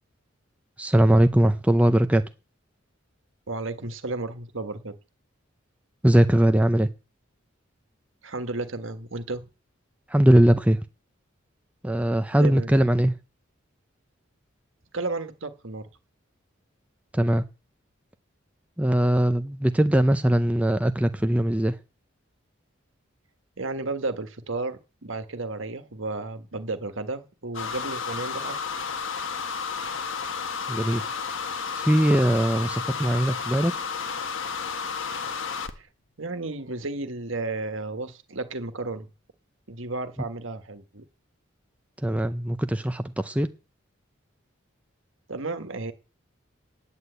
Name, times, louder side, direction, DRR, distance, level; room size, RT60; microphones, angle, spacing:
voice 1, 0.8-2.2 6.0-6.9 10.1-10.8 11.8-13.2 17.1-17.4 18.8-21.8 30.7-31.0 31.7-33.8 42.0-43.5, right 1 dB, 5° right, 0.6 m, -21 dB
voice 2, 3.5-4.9 8.2-9.4 12.3-12.7 14.9-15.9 23.6-28.7 35.8-35.9 36.2-39.1 39.7-41.0 45.3-45.9, right 3 dB, 75° right, 1.6 m, -33 dB
sound 1, 27.5-35.8, left 5 dB, 70° left, 1.4 m, -32 dB
10.0 x 9.7 x 8.1 m
head